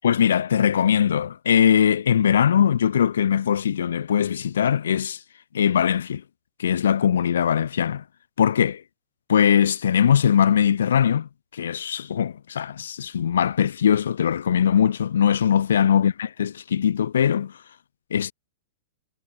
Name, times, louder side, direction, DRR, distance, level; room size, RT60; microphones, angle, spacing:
voice 1, 0.0-5.2 5.5-6.2 6.6-8.0 8.4-8.8 9.3-17.5 18.1-18.3, left 8 dB, 85° left, 6.6 m, -21 dB
hypercardioid pair, 145°, 0 cm